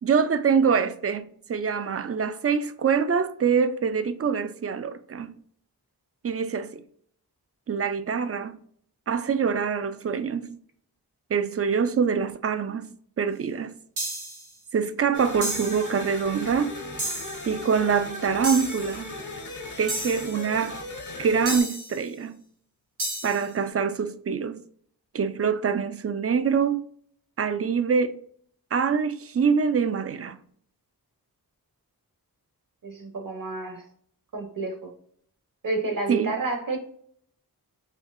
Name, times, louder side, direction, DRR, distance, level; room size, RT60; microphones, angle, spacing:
voice 1, 0.0-5.4 6.2-6.8 7.7-8.6 9.1-10.6 11.3-13.8 14.7-16.7 17.5-19.2 19.8-20.8 21.2-22.4 23.2-24.7 25.1-26.8 27.4-28.2 28.7-30.4 36.1-36.4, right 6 dB, 40° right, 0.4 m, -25 dB
sound 1, 14.0-14.5 15.4-15.9 17.0-17.5 18.4-18.9 19.9-20.4 21.5-22.0 23.0-23.5, right 1 dB, 90° right, 1.4 m, -32 dB
sound 2, 15.1-21.6, left 2 dB, 50° left, 0.9 m, -38 dB
voice 2, 32.8-33.8 34.3-34.9 35.6-36.8, right 3 dB, 60° right, 1.0 m, -30 dB
4.3 x 2.8 x 2.5 m
wide cardioid pair, 55°, 38 cm